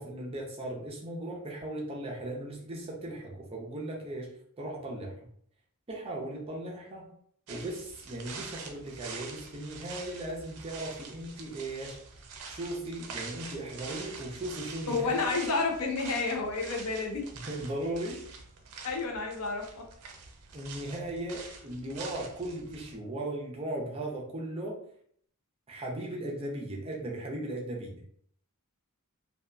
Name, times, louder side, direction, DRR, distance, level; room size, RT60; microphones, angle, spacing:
voice 1, 0.0-5.2 5.9-7.1 7.5-12.0 12.4-15.2 17.5-18.2 20.5-24.8 25.7-27.9, right 1 dB, 25° right, -2 dB, 0.5 m, -37 dB
sound 1, 7.5-23.0, right 4 dB, 75° right, 0.5 m, -45 dB
voice 2, 14.9-17.2 18.8-19.8 21.8-22.0, left 3 dB, 80° left, 3 dB, 0.5 m, -30 dB
2.7 x 2.3 x 2.2 m, 0.64 s
head